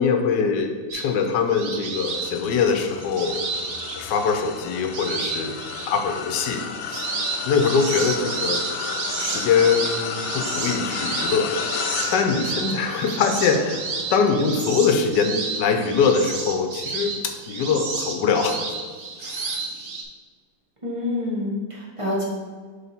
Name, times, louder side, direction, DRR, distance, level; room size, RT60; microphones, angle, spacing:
voice 1, 0.0-3.5 3.9-8.6 9.2-11.5 11.8-13.8 14.1-18.8 19.2-19.6, left 5 dB, 70° left, 5 dB, 1.3 m, -23 dB
sound 1, 0.9-4.4 4.9-6.0 6.5-20.0, right 4 dB, 55° right, 0.7 m, -31 dB
sound 2, 2.1-17.6 18.1-18.3 19.6-19.7, left 6 dB, 90° left, 1.3 m, -34 dB
voice 2, 20.8-22.2, left 2 dB, 20° right, -5 dB, 1.1 m, -27 dB
7.1 x 3.8 x 4.3 m, 1.5 s
omnidirectional pair, 2.0 m